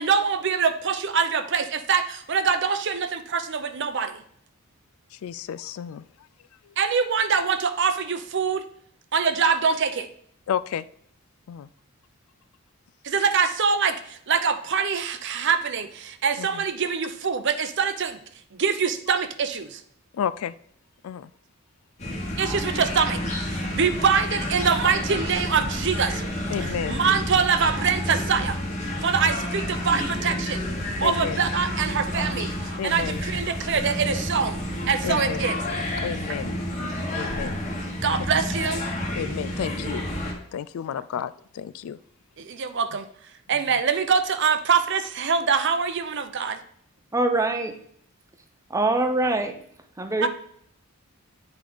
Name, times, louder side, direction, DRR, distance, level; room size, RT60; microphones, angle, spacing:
voice 1, 0.0-4.2 6.8-8.6 9.1-10.1 13.0-18.2 18.5-19.8 22.4-26.2 26.9-28.6 29.0-30.6 31.0-34.6 34.9-35.9 38.0-38.8 42.4-43.0 43.5-46.6 50.2-50.3, right 6 dB, 55° right, 0.6 m, -24 dB
voice 2, 5.1-6.3 6.6-6.8 10.5-10.9 11.5-11.7 16.4-16.6 20.1-20.5 21.0-21.3 26.5-27.0 31.0-31.5 32.8-33.2 35.0-35.4 36.0-36.5 37.2-37.7 39.1-40.1 40.5-42.0 42.9-43.0 43.5-43.8, left 8 dB, 70° left, 0.3 m, -32 dB
sound 1, 22.0-40.3, left 1 dB, 30° left, 1.4 m, -30 dB
voice 3, 47.1-47.8 48.7-49.6 50.0-50.3, right 2 dB, 15° right, 0.6 m, -23 dB
8.6 x 4.8 x 3.9 m
head